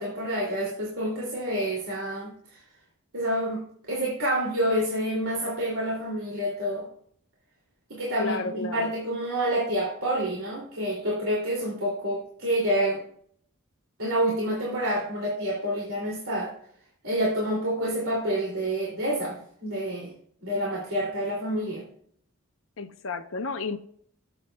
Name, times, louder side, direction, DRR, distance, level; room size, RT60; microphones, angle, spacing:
voice 1, 0.0-2.6 3.1-3.6 3.9-6.9 7.9-13.0 14.0-16.5 17.0-20.1 20.4-21.8, right 1 dB, 85° right, 2.5 m, -28 dB
voice 2, 8.2-8.9 22.8-23.8, left 3 dB, 70° left, 0.7 m, -32 dB
18.0 x 7.8 x 2.2 m
head